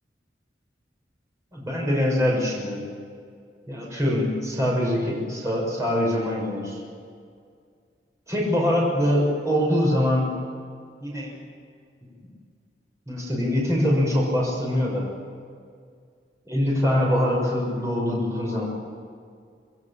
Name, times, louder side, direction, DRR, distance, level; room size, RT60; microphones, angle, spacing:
voice 1, 1.5-2.8 3.7-6.8 8.3-10.3 11.0-11.4 13.1-15.1 16.5-18.7, left 1 dB, 20° right, -4 dB, 6.9 m, -23 dB
26.0 x 21.5 x 7.5 m, 2.2 s
head